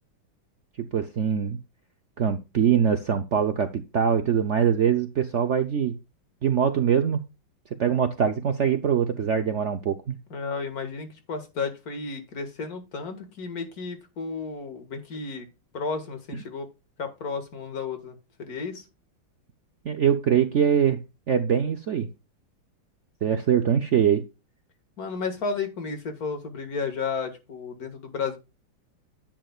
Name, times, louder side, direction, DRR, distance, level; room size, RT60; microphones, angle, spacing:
voice 1, 0.8-1.6 2.2-5.9 6.4-7.2 7.8-10.2 19.8-21.0 21.3-22.1 23.2-24.2, right 8 dB, 75° right, 0.6 m, -23 dB
voice 2, 10.3-15.5 15.7-16.7 17.0-18.8 25.0-28.4, left 4 dB, 50° left, 2.2 m, -33 dB
10.5 x 8.6 x 2.3 m
omnidirectional pair, 2.2 m